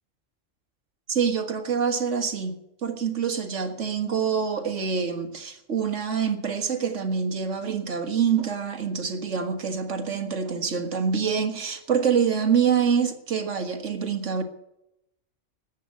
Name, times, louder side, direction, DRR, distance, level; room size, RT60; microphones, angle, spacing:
voice 1, 1.1-2.6 2.8-14.4, right 6 dB, 85° right, 1.9 m, -26 dB
14.0 x 9.4 x 8.2 m
omnidirectional pair, 1.2 m